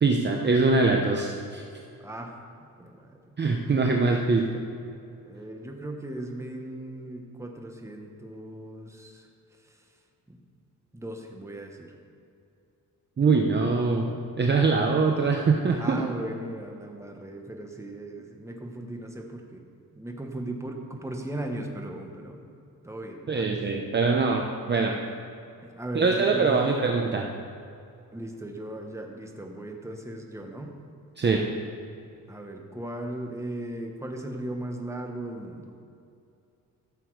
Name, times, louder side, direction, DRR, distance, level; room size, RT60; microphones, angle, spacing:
voice 1, 0.0-1.6 3.4-4.5 13.2-14.1 14.4-16.0 23.3-25.0 25.9-27.3 31.2-31.4, right 4 dB, 30° right, 1 dB, 0.7 m, -23 dB
voice 2, 2.0-2.3 2.8-3.4 5.3-9.3 9.6-9.8 10.3-10.4 10.9-11.9 14.8-14.9 15.7-19.6 19.9-22.5 22.8-23.5 25.6-26.6 28.1-30.8 32.3-35.7, right 1 dB, 10° right, 2 dB, 1.2 m, -37 dB
13.0 x 6.8 x 4.7 m, 2.5 s
cardioid pair, 125°, 35 cm